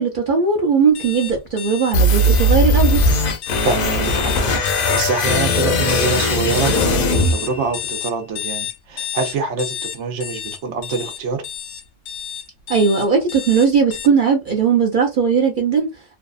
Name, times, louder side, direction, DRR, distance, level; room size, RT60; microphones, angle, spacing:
voice 1, 0.0-3.0 12.7-15.9, right 5 dB, 55° right, 0.6 m, -18 dB
sound 1, 0.9-14.1, left 10 dB, 90° left, 0.9 m, -31 dB
sound 2, 1.9-8.0, left 1 dB, 55° left, 0.7 m, -18 dB
voice 2, 3.6-4.3 4.7-11.4, right 4 dB, 75° right, 1.0 m, -25 dB
2.7 x 2.2 x 2.4 m
omnidirectional pair, 1.2 m